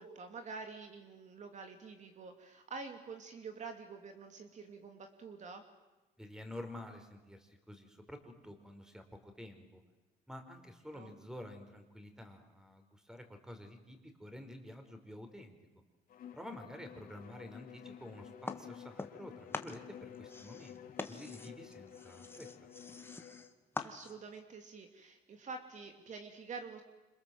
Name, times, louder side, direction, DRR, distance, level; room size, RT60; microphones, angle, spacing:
voice 1, 0.0-5.7 10.9-11.1 23.8-26.8, right 4 dB, 45° right, 6 dB, 2.7 m, -47 dB
voice 2, 6.2-9.8 10.3-15.5 16.3-20.8 21.0-22.5, left 1 dB, 5° right, 7 dB, 4.8 m, -50 dB
Bowed string instrument, 16.1-23.5, left 9 dB, 60° left, 3.3 m, -52 dB
sound 1, 18.5-19.3 19.5-24.4, left 3 dB, 15° left, 2.0 m, -44 dB
28.0 x 26.5 x 7.8 m, 1.1 s
cardioid pair, 110°, 17 cm